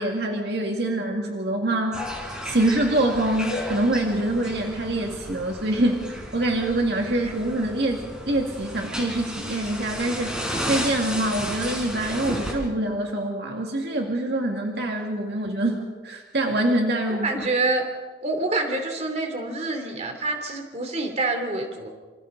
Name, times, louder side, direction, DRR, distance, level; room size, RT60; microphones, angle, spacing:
voice 1, 0.0-2.2 2.4-17.3, right 1 dB, 65° right, 1 dB, 2.0 m, -25 dB
sound 1, 1.9-12.5, equal, 5° right, 4.3 m, -33 dB
voice 2, 17.2-17.8 18.2-21.9, right 2 dB, 40° right, 4 dB, 3.0 m, -27 dB
27.5 x 26.0 x 3.9 m, 1.4 s
head